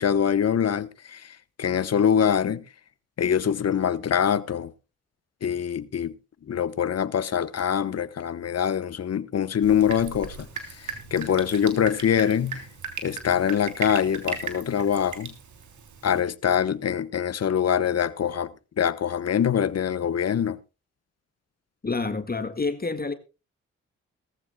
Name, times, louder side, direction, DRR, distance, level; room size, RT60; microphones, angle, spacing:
voice 1, 0.0-2.6 3.2-4.7 5.4-6.1 6.5-12.7 13.0-15.3 16.0-20.6, left 8 dB, 55° left, 1.0 m, -24 dB
Drip, 9.6-16.2, right 6 dB, 75° right, 3.3 m, -37 dB
voice 2, 21.8-23.1, left 3 dB, 30° left, 1.8 m, -28 dB
19.0 x 14.5 x 2.2 m
supercardioid pair, 45°, 30 cm